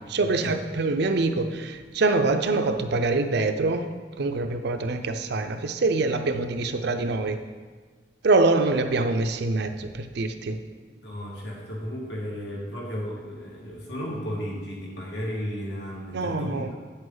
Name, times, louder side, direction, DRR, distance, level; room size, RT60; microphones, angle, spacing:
voice 1, 0.1-3.9 4.2-7.4 8.2-10.6 16.1-16.7, right 3 dB, 60° right, 7 dB, 0.6 m, -25 dB
voice 2, 10.9-16.7, equal, 65° left, -3 dB, 1.9 m, -34 dB
8.3 x 7.9 x 3.9 m, 1.5 s
head